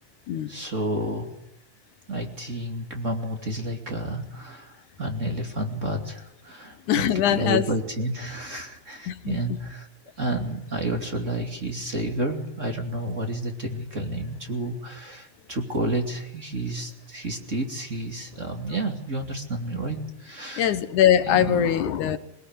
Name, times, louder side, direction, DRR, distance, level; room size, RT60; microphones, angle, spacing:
voice 1, 0.5-1.3 2.1-9.9 10.2-20.7 21.2-21.6, right 1 dB, 25° right, 4 dB, 2.7 m, -30 dB
voice 2, 6.9-7.6 9.1-9.4 20.6-22.2, left 10 dB, 75° left, 11 dB, 2.6 m, -22 dB
22.5 x 21.5 x 9.6 m, 0.77 s
omnidirectional pair, 3.6 m